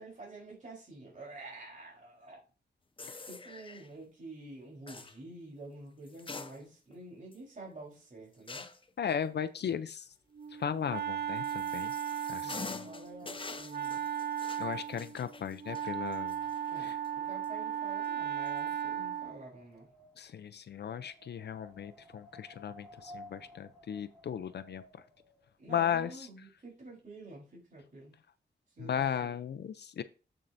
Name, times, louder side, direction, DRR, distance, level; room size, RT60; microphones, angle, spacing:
voice 1, 0.0-2.4 3.2-8.7 12.4-14.0 16.7-19.9 25.6-28.2 28.8-29.4, right 2 dB, 40° right, -4 dB, 4.1 m, -49 dB
sound 1, 3.0-3.9 4.9-5.2 6.1-6.9 7.3-7.4 8.5-8.9 11.0-17.1 17.4-17.5 18.5-18.8, left 4 dB, 25° left, 0.7 m, -46 dB
voice 2, 9.0-10.1 10.5-11.9 12.3-12.8 14.6-16.4 16.8-17.0 20.2-25.0 25.7-26.3 28.8-30.0, left 8 dB, 65° left, 12 dB, 0.5 m, -36 dB
Wind instrument woodwind instrument, 10.3-19.4, right 9 dB, 60° right, 0.6 m, -36 dB
Wind, 16.5-25.5, equal, ahead, 3.7 m, -57 dB
8.0 x 7.3 x 2.6 m, 0.35 s
wide cardioid pair, 95°, 19 cm